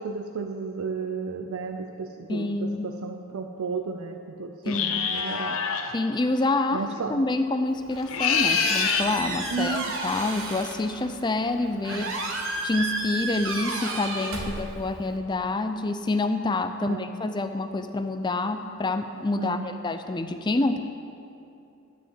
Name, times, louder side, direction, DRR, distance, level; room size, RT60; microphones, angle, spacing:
voice 1, 0.0-5.6 6.7-7.2 9.5-10.1 11.8-12.1 14.4-14.7 16.8-17.2 19.4-19.8, right 4 dB, 75° right, 5 dB, 0.5 m, -33 dB
voice 2, 2.3-2.9 4.6-5.0 5.9-12.1 12.6-20.8, left 2 dB, 20° left, 8 dB, 0.4 m, -27 dB
sound 1, 4.7-5.9 8.0-9.1, left 6 dB, 70° left, 0.7 m, -25 dB
Squeak, 7.7-15.2, right 2 dB, 60° right, 1.2 m, -33 dB
12.5 x 5.0 x 7.7 m, 2.7 s
head